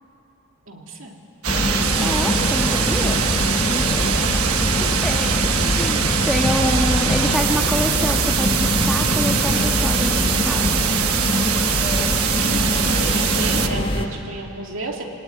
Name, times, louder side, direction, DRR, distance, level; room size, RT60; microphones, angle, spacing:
voice 1, 0.7-1.1 3.9-4.4 12.3-15.0, right 2 dB, 60° right, 1 dB, 2.9 m, -32 dB
sound 1, 1.4-13.7, right 8 dB, 85° right, 1.2 m, -23 dB
sound 2, 1.5-14.0, left 1 dB, 25° left, 1.5 m, -23 dB
voice 2, 2.0-3.2 5.0-10.9, equal, ahead, 0 dB, 1.5 m, -27 dB
26.0 x 19.0 x 9.5 m, 2.9 s
head